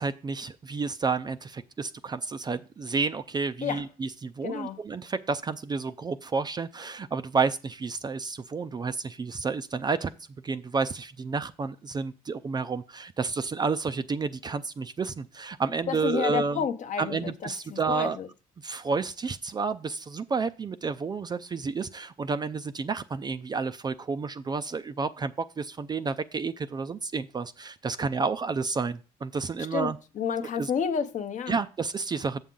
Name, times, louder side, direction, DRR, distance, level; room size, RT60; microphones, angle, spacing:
voice 1, 0.0-10.1 10.4-16.7 17.0-18.2 18.6-30.0 30.6-30.7 31.5-32.4, right 4 dB, 25° right, 0.4 m, -30 dB
voice 2, 4.4-4.8 15.9-18.3 29.7-29.9 30.2-31.5, left 7 dB, 45° left, 0.8 m, -30 dB
7.3 x 7.2 x 3.8 m
cardioid pair, 110°, 17 cm